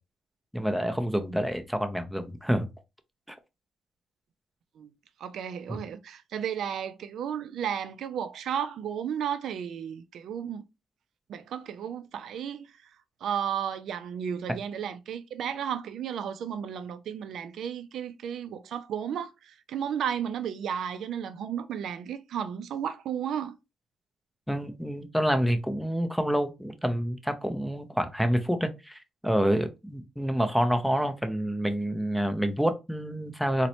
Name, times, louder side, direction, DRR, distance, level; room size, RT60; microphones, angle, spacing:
voice 1, 0.5-2.7 5.7-5.8 24.5-33.7, equal, ahead, 0.6 m, -28 dB
voice 2, 5.2-10.7 11.3-12.7 13.2-23.6, right 8 dB, 70° right, 0.3 m, -33 dB
3.9 x 2.1 x 2.8 m
cardioid pair, 90°, 0 cm